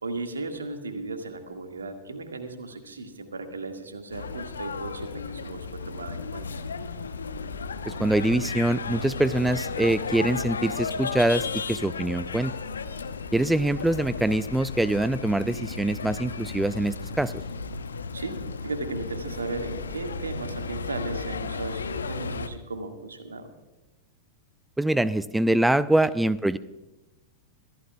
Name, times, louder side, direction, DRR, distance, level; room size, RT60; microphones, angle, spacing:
voice 1, 0.0-6.5 18.1-23.5, right 3 dB, 80° right, 5 dB, 1.8 m, -36 dB
sound 1, 4.1-22.5, left 4 dB, 75° left, 0.9 m, -34 dB
voice 2, 7.9-12.5 13.3-17.3 24.8-26.6, right 1 dB, 5° right, 17 dB, 0.4 m, -24 dB
25.0 x 15.0 x 2.3 m, 1.0 s
figure-of-eight pair, 95°, 0 cm